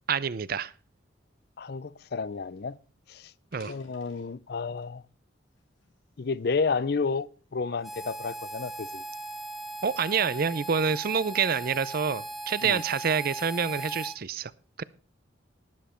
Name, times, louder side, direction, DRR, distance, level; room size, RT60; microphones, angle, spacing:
voice 1, 0.1-0.7 3.5-3.7 9.8-14.5 14.8-14.9, right 6 dB, 50° right, 0.5 m, -27 dB
voice 2, 1.6-2.8 3.1-3.3 3.7-5.0 6.2-9.0 12.6-12.8, left 4 dB, 55° left, 0.5 m, -31 dB
sound 1, 2.7-2.9 3.4-5.0 5.5-6.8 7.4-7.6 8.3-10.3, left 2 dB, 90° left, 4.7 m, -56 dB
Harmonica, 7.8-14.2, right 1 dB, ahead, 0.7 m, -38 dB
12.0 x 10.5 x 4.3 m
head